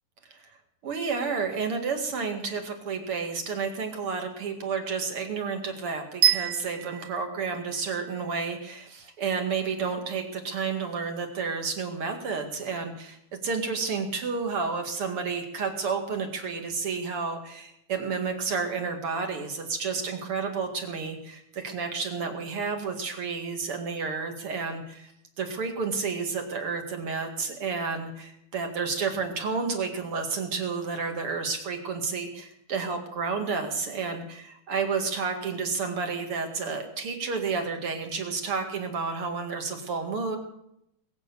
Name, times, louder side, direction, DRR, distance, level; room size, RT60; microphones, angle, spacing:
voice 1, 0.8-25.1 25.4-40.4, right 5 dB, 45° right, 4 dB, 2.7 m, -31 dB
sound 1, 6.2-8.3, right 10 dB, 85° right, 1.2 m, -26 dB
21.0 x 8.4 x 6.9 m, 0.79 s
omnidirectional pair, 3.8 m